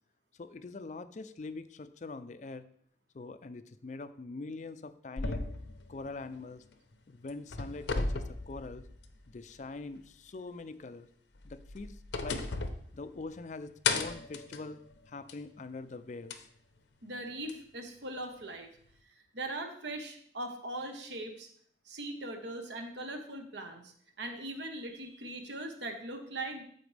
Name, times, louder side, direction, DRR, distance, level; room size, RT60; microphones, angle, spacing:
voice 1, 0.4-2.7 3.1-5.4 5.9-6.6 7.1-8.8 9.3-11.1 11.4-12.4 12.9-14.8 15.1-16.5, left 3 dB, 40° left, 12 dB, 0.4 m, -43 dB
sound 1, 5.2-6.9 7.3-9.3 9.6-9.7 11.4-13.5 13.8-15.5 16.3-16.4 17.5-17.6, left 4 dB, 75° left, 0.7 m, -36 dB
voice 2, 17.0-18.7 19.3-21.5 21.9-26.6, right 1 dB, 75° right, 5 dB, 1.1 m, -40 dB
13.0 x 4.3 x 3.3 m, 0.62 s
head